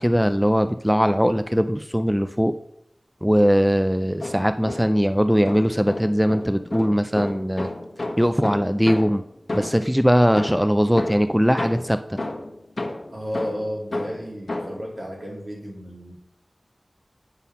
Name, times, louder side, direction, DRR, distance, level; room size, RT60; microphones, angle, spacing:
voice 1, 0.0-2.5 3.2-7.7 8.2-9.2 9.5-12.2, equal, 5° right, 9 dB, 0.3 m, -20 dB
sound 1, 4.0-5.1 5.5-10.0 10.4-14.9, left 2 dB, 65° left, 1.3 m, -32 dB
voice 2, 13.1-16.1, equal, 55° right, -2 dB, 2.4 m, -33 dB
9.9 x 3.7 x 5.5 m, 0.78 s
wide cardioid pair, 55°, 0 cm